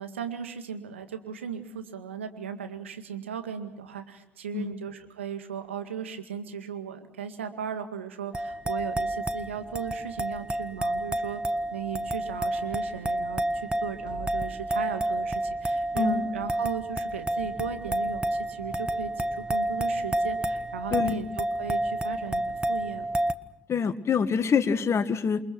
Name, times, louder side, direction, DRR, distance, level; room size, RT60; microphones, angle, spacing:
voice 1, 0.0-11.4 11.7-23.1, right 7 dB, 90° right, 7 dB, 2.0 m, -37 dB
sound 1, 8.3-23.3, right 1 dB, 15° right, 1.6 m, -30 dB
voice 2, 23.7-25.4, left 6 dB, 45° left, 11 dB, 1.9 m, -25 dB
28.5 x 23.5 x 6.2 m, 0.78 s
hypercardioid pair, 50°, 6 cm